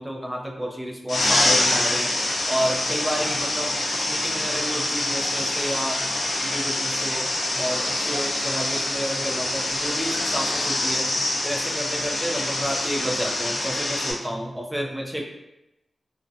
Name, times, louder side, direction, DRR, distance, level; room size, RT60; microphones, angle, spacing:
voice 1, 0.0-2.1 2.5-6.1 6.4-7.3 7.5-11.0 11.4-15.2, equal, 5° right, -1 dB, 0.4 m, -30 dB
sound 1, 1.1-14.1, left 1 dB, 60° left, 0.5 m, -25 dB
2.6 x 2.1 x 2.4 m, 0.90 s
wide cardioid pair, 130°, 0 cm